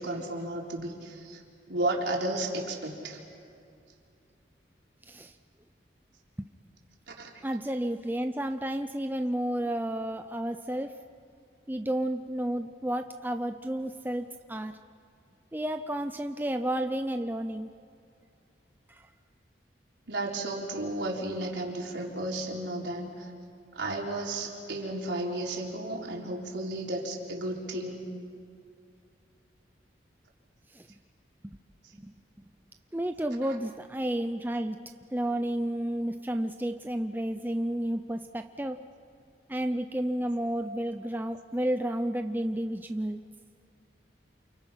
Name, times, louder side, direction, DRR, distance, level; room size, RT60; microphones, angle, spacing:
voice 1, 0.0-1.4 1.7-3.2 7.1-7.3 20.1-23.3 23.7-28.1, right 1 dB, 75° right, -1 dB, 4.2 m, -33 dB
voice 2, 7.4-11.0 11.7-14.8 15.5-17.7 18.9-19.1 30.7-30.9 31.4-31.6 32.0-32.1 32.9-34.8 35.1-38.8 39.5-43.2, right 1 dB, 10° right, 7 dB, 0.6 m, -31 dB
29.0 x 29.0 x 5.7 m, 2.4 s
head